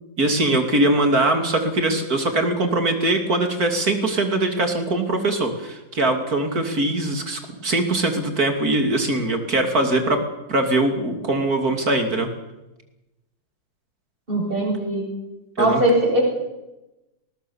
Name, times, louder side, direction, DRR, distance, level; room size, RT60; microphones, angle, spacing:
voice 1, 0.2-10.2 10.5-12.3 15.6-15.8, right 2 dB, 45° right, 5 dB, 3.3 m, -21 dB
voice 2, 14.3-15.1 15.6-16.2, right 1 dB, 25° right, -1 dB, 7.3 m, -20 dB
20.0 x 19.5 x 7.2 m, 0.99 s
omnidirectional pair, 2.2 m